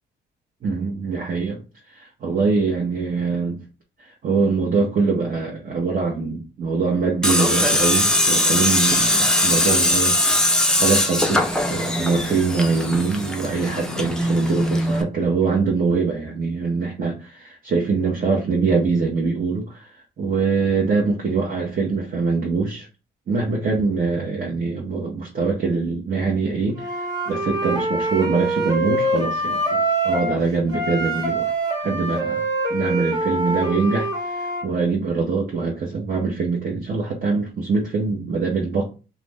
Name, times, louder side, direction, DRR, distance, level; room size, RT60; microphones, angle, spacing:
voice 1, 0.6-1.6 1.9-3.6 4.2-19.8 20.2-22.9 23.3-26.9 27.3-31.5 31.8-32.4 32.7-34.3 34.6-38.8, right 4 dB, 45° right, 0.8 m, -23 dB
Tools, 7.2-15.0, left 1 dB, 5° left, 0.5 m, -20 dB
Wind instrument woodwind instrument, 26.8-30.4 30.7-34.6, right 1 dB, 20° right, 1.1 m, -24 dB
2.5 x 2.1 x 3.3 m
cardioid pair, 90°, 20 cm